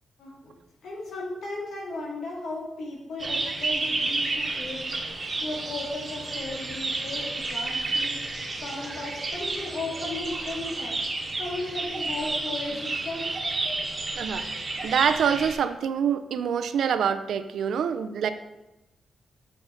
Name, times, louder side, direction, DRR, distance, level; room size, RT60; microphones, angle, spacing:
voice 1, 0.2-0.5 0.8-4.9 5.4-8.2 8.6-13.3, left 2 dB, 75° left, -2 dB, 2.3 m, -36 dB
sound 1, 3.2-15.5, right 2 dB, 25° right, 1.2 m, -31 dB
voice 2, 14.8-18.3, right 7 dB, 75° right, 9 dB, 0.5 m, -25 dB
7.8 x 5.4 x 4.4 m, 0.98 s
wide cardioid pair, 170°, 0 cm